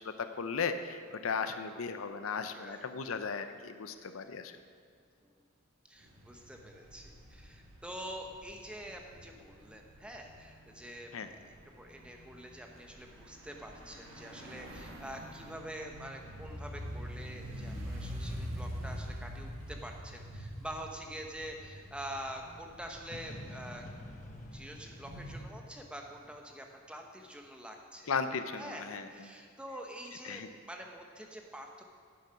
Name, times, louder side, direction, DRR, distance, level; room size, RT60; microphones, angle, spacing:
voice 1, 0.0-4.5 11.1-11.3 28.1-29.1 30.3-30.5, left 5 dB, 85° left, 9 dB, 0.6 m, -36 dB
voice 2, 2.4-2.9 5.2-5.4 5.8-23.8 24.5-28.1 28.6-31.8, equal, 5° right, 2 dB, 0.8 m, -46 dB
sound 1, 6.0-25.4, equal, 70° right, 1.6 m, -46 dB
sound 2, 23.1-27.0, left 1 dB, 35° left, 0.9 m, -50 dB
9.7 x 7.0 x 5.6 m, 2.2 s
head